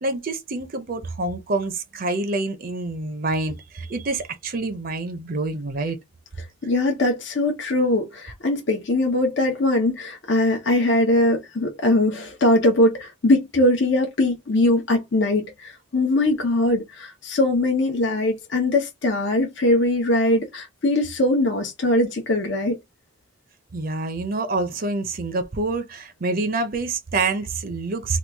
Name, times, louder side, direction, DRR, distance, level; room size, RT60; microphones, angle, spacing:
voice 1, 0.0-6.0 23.7-28.2, right 3 dB, 45° right, 0.6 m, -27 dB
voice 2, 6.6-22.8, left 1 dB, 60° left, 0.7 m, -21 dB
3.0 x 2.3 x 3.4 m
head